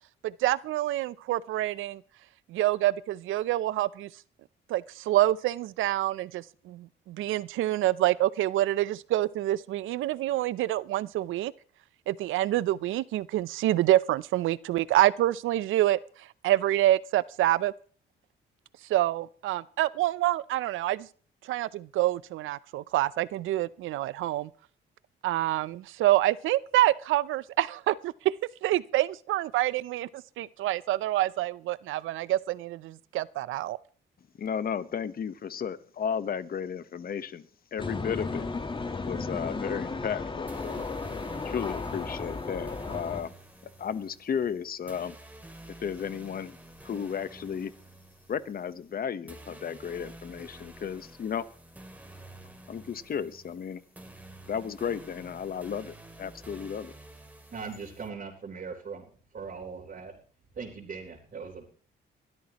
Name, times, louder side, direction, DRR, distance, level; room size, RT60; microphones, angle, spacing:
voice 1, 0.2-2.0 2.5-4.1 4.7-11.5 12.1-17.7 18.9-21.1 21.4-24.5 25.2-28.3 28.6-33.8, right 15 dB, 85° right, 0.6 m, -27 dB
voice 2, 34.4-37.4 37.7-38.4 38.8-40.9 41.4-43.3 43.8-45.2 45.8-46.6 46.8-47.7 48.3-51.4 52.7-53.8 54.5-56.9, left 7 dB, 50° left, 1.1 m, -34 dB
sound 1, 37.8-43.2, left 3 dB, 25° left, 1.4 m, -34 dB
sound 2, 40.5-58.1, right 1 dB, 10° right, 2.5 m, -50 dB
voice 3, 57.5-60.1 60.5-61.7, right 5 dB, 45° right, 3.8 m, -40 dB
22.0 x 13.0 x 3.0 m
cardioid pair, 90°, 20 cm